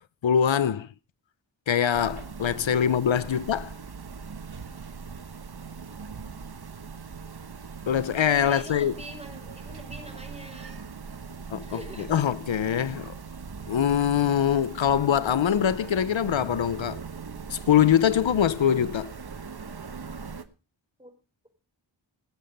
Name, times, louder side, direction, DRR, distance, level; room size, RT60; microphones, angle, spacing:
voice 1, 0.2-0.9 1.7-3.7 7.9-8.9 11.5-13.1 13.7-17.0 17.5-19.1, left 9 dB, 80° left, 0.7 m, -23 dB
sound 1, 1.9-20.4, right 5 dB, 55° right, 1.2 m, -40 dB
voice 2, 8.5-10.8 11.6-12.3 21.0-21.1, right 1 dB, 15° right, 5.0 m, -44 dB
20.0 x 7.7 x 5.2 m
wide cardioid pair, 50°, 45 cm